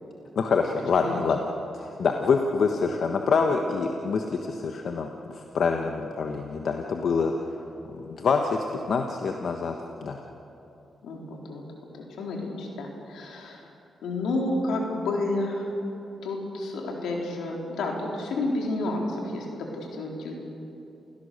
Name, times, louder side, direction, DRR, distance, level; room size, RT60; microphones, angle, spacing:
voice 1, 0.3-1.4 1.7-7.3 7.9-9.7 10.0-10.2, left 5 dB, 70° left, 3 dB, 1.3 m, -26 dB
voice 2, 11.0-11.6 11.9-13.7 14.0-15.7 16.2-20.4, left 2 dB, 85° left, 0 dB, 3.8 m, -30 dB
29.0 x 16.5 x 6.8 m, 2.9 s
cardioid pair, 65°, 0 cm